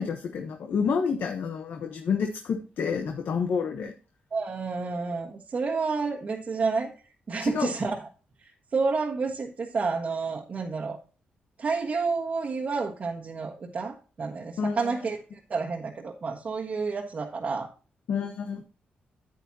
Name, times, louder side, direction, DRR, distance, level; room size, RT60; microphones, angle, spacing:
voice 1, 0.0-3.9 7.4-7.7 14.6-15.0 18.1-18.6, left 6 dB, 70° left, 4 dB, 1.1 m, -29 dB
voice 2, 4.3-6.9 7.3-8.1 8.4-11.0 11.6-17.7, right 4 dB, 45° right, 0 dB, 1.4 m, -30 dB
9.6 x 9.0 x 2.9 m, 0.36 s
cardioid pair, 90°, 3 cm